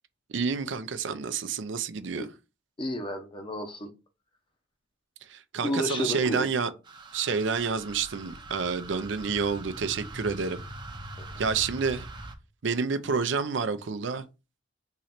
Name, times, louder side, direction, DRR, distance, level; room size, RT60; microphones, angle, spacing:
voice 1, 0.3-2.3 5.3-6.7 7.1-10.6 11.4-12.1 12.6-14.3, right 5 dB, 70° right, 0.5 m, -29 dB
voice 2, 2.8-3.9 5.6-6.5 11.2-11.3, left 1 dB, 25° left, 0.7 m, -31 dB
sound 1, 6.9-12.3, right 2 dB, 25° right, 0.6 m, -42 dB
3.7 x 3.1 x 4.3 m
head